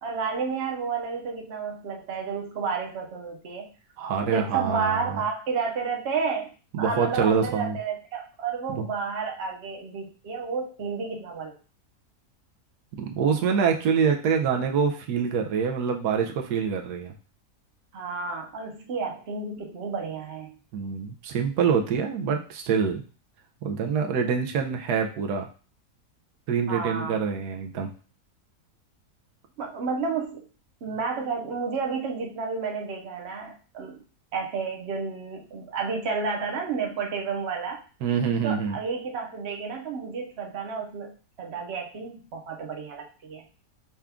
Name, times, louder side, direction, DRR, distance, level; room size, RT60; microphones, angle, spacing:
voice 1, 0.0-3.7 4.2-6.5 6.8-11.5 17.9-20.5 26.7-27.2 29.6-30.4 30.8-34.0 34.3-37.8 38.4-43.4, right 5 dB, 50° right, 1 dB, 1.0 m, -31 dB
voice 2, 4.0-5.2 6.7-7.8 8.7-8.8 13.0-17.1 20.7-23.0 23.6-25.5 26.5-27.9 38.0-38.8, right 6 dB, 85° right, 3 dB, 1.2 m, -25 dB
5.6 x 2.4 x 3.5 m, 0.37 s
omnidirectional pair, 1.7 m